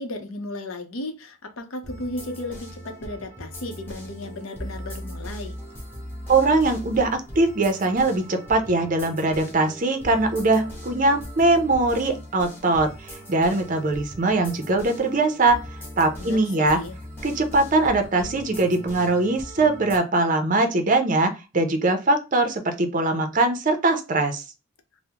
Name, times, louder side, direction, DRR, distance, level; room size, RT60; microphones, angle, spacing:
voice 1, 0.0-5.6 16.2-17.0, left 1 dB, 80° left, 0.6 m, -35 dB
sound 1, 1.8-20.0, equal, 10° left, 1.0 m, -39 dB
voice 2, 6.3-12.9 13.3-15.6 16.0-16.8 17.2-24.4, right 2 dB, 40° right, 0.5 m, -21 dB
3.4 x 2.0 x 2.8 m
head